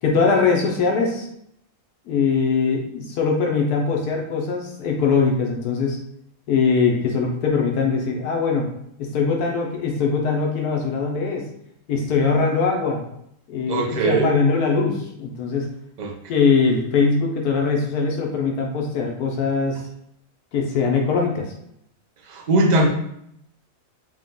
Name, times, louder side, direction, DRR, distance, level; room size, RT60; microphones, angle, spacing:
voice 1, 0.0-1.3 2.1-6.0 6.5-8.7 9.0-11.5 11.9-13.0 13.5-15.7 16.3-19.8 20.5-21.5, left 5 dB, 80° left, 1 dB, 1.2 m, -21 dB
voice 2, 13.7-14.3 16.0-16.1 22.3-22.9, right 2 dB, 45° right, 0 dB, 0.5 m, -20 dB
4.9 x 2.3 x 3.7 m, 0.74 s
omnidirectional pair, 1.6 m